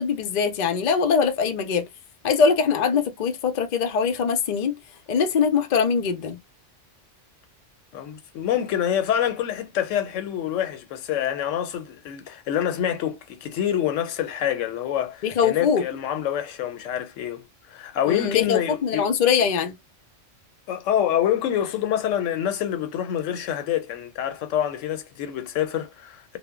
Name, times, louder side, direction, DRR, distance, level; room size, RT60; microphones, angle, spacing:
voice 1, 0.0-1.9 2.2-4.8 5.1-6.4 15.2-15.8 18.1-19.7, left 6 dB, 55° left, 0.5 m, -22 dB
voice 2, 7.9-19.0 20.7-26.4, left 10 dB, 90° left, 1.0 m, -26 dB
2.1 x 2.0 x 3.5 m
omnidirectional pair, 1.3 m